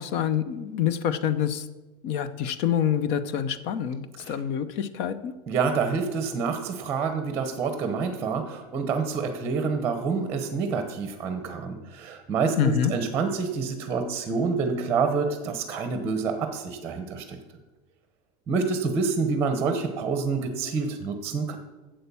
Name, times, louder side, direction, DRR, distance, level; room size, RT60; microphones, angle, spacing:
voice 1, 0.0-1.7 2.0-5.3 12.6-12.9, left 9 dB, 50° left, 14 dB, 0.7 m, -26 dB
voice 2, 5.5-17.4 18.5-21.6, right 5 dB, 20° right, 7 dB, 0.9 m, -27 dB
8.8 x 7.7 x 6.9 m, 1.2 s
cardioid pair, 170°, 13 cm